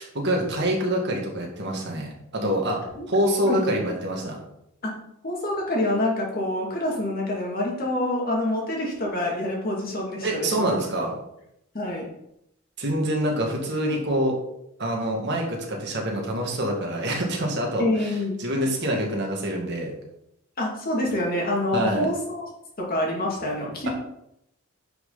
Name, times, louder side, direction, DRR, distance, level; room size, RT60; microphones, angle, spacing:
voice 1, 0.0-2.8 3.1-4.4 10.2-11.2 12.8-14.4 14.8-18.1 18.4-19.9 21.7-22.1, right 1 dB, 50° right, 0 dB, 2.3 m, -26 dB
voice 2, 5.2-10.7 11.7-12.1 17.8-18.4 20.6-22.5 22.8-23.9, left 1 dB, 40° left, -2 dB, 2.5 m, -26 dB
10.5 x 5.8 x 4.1 m, 0.79 s
head